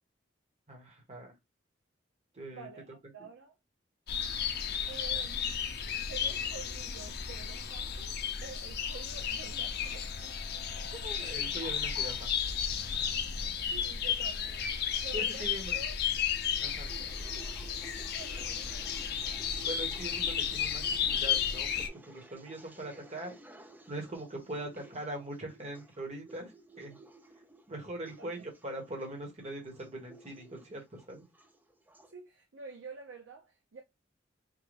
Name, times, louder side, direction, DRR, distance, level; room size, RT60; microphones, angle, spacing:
voice 1, 0.7-1.3 2.3-2.7 10.8-12.3 15.1-15.8 16.6-16.9 19.6-23.3 23.9-27.0 27.7-31.2, right 1 dB, 35° right, 1.2 m, -42 dB
voice 2, 2.5-3.6 4.9-5.8 6.1-10.5 13.0-16.0 18.1-18.9 28.2-28.5 32.1-33.8, right 4 dB, 80° right, 0.6 m, -49 dB
sound 1, 4.1-21.9, left 7 dB, 55° left, 0.5 m, -33 dB
sound 2, 16.7-32.1, right 2 dB, 10° right, 0.4 m, -54 dB
3.8 x 2.2 x 3.2 m
head